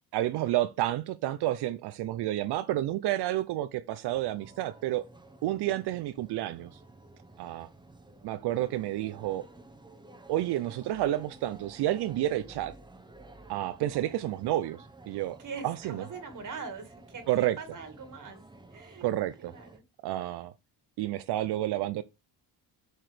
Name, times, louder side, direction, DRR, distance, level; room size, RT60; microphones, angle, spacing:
voice 1, 0.1-5.1 5.4-6.8 7.4-7.7 8.2-9.5 10.3-12.7 13.5-15.4 15.6-16.0 17.3-17.6 19.0-19.5 20.0-20.5 21.0-22.0, right 14 dB, 70° right, 0.6 m, -30 dB
sound 1, 4.1-19.8, right 2 dB, 10° right, 0.9 m, -52 dB
voice 2, 15.4-18.4 18.7-19.1 19.4-19.8, right 5 dB, 45° right, 1.9 m, -42 dB
7.6 x 4.8 x 3.3 m
cardioid pair, 105°, 42 cm